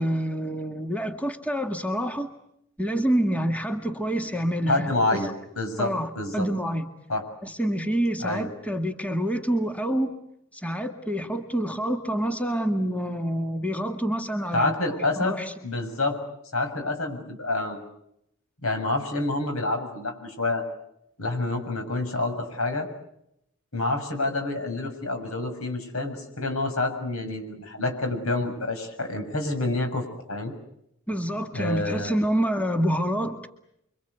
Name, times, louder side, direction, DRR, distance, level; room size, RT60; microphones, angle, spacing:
voice 1, 0.0-2.3 2.8-5.3 5.8-6.9 7.4-10.1 10.5-14.7 15.2-15.5 31.1-33.5, equal, 5° left, 5 dB, 1.9 m, -27 dB
voice 2, 4.7-6.5 7.1-7.2 8.2-8.5 14.5-15.3 15.6-16.2 16.5-17.8 18.6-20.6 21.2-22.9 23.7-30.5 31.5-32.2, left 2 dB, 85° left, 6 dB, 6.9 m, -28 dB
29.0 x 24.5 x 8.2 m, 0.78 s
head